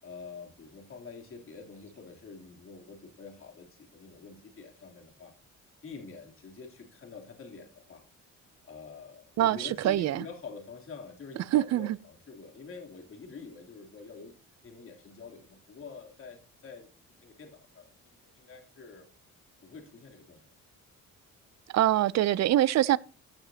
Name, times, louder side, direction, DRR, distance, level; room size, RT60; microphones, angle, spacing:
voice 1, 0.0-5.3 5.8-8.0 8.6-14.4 14.6-19.1 19.6-20.4, left 4 dB, 45° left, 3.2 m, -46 dB
voice 2, 9.4-10.2 11.5-12.0 21.7-23.0, right 13 dB, 60° right, 0.5 m, -24 dB
15.0 x 6.7 x 2.8 m
cardioid pair, 90°, 30 cm